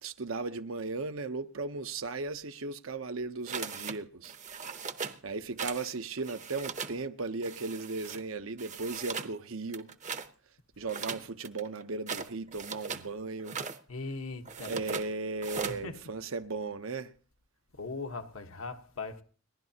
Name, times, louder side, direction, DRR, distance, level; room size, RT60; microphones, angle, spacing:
voice 1, 0.0-4.3 5.2-9.9 10.8-13.6 14.6-17.1, right 3 dB, 75° right, 0.8 m, -36 dB
sound 1, 3.5-4.0 4.2-5.2 5.6-5.9 6.2-7.0 7.4-8.2 8.6-9.3 9.7-10.3 10.9-13.1 13.4-13.8 14.5-15.1 15.4-15.8, right 5 dB, 35° right, 0.7 m, -39 dB
voice 2, 13.9-14.8 15.7-16.0 17.8-19.2, left 3 dB, 80° left, 1.3 m, -39 dB
30.0 x 11.0 x 2.9 m
head